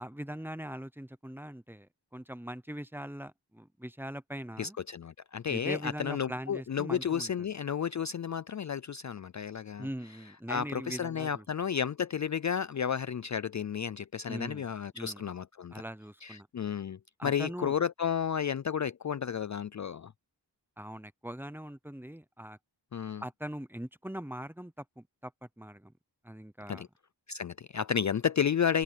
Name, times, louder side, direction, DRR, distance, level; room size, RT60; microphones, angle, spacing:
voice 1, 0.0-4.8 5.5-7.5 9.8-11.5 14.3-15.2 15.7-16.5 17.2-17.7 20.8-22.6 23.2-25.9 26.2-26.9, equal, 5° right, 0.8 m, -41 dB
voice 2, 4.6-9.9 10.5-15.7 16.2-20.1 22.9-23.2 26.7-26.9 27.3-28.8, left 7 dB, 40° left, 0.4 m, -32 dB
wide cardioid pair, 90°, 43 cm